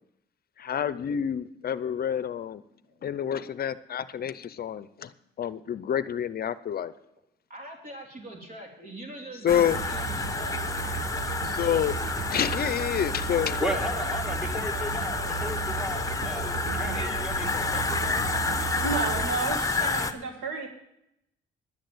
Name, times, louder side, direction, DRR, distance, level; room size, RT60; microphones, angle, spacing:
voice 1, 0.6-2.6 3.0-5.1 5.4-6.9 9.4-9.8 11.4-12.0 12.3-13.6, left 9 dB, 50° left, 15 dB, 0.6 m, -28 dB
voice 2, 7.5-11.0, right 2 dB, 45° right, 0 dB, 3.5 m, -43 dB
sound 1, 9.5-20.1, left 3 dB, 15° left, 1.0 m, -30 dB
Musical instrument, 9.7-19.3, right 9 dB, 70° right, 1.3 m, -35 dB
voice 3, 13.6-18.3, left 1 dB, 5° right, 3 dB, 2.0 m, -35 dB
voice 4, 18.8-20.7, right 4 dB, 85° right, 3 dB, 2.1 m, -32 dB
11.0 x 8.9 x 7.9 m, 0.80 s
cardioid pair, 90°, 20 cm